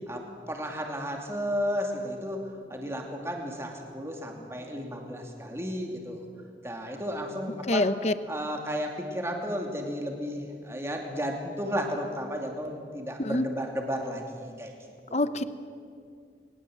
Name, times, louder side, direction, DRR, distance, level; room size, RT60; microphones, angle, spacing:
voice 1, 0.1-2.4 2.7-6.2 6.6-7.9 8.3-14.7 15.1-15.5, equal, 15° right, 2 dB, 2.5 m, -33 dB
voice 2, 7.7-8.1 13.2-13.4 15.1-15.4, left 1 dB, 40° left, 13 dB, 0.8 m, -25 dB
22.0 x 20.0 x 7.9 m, 2.2 s
head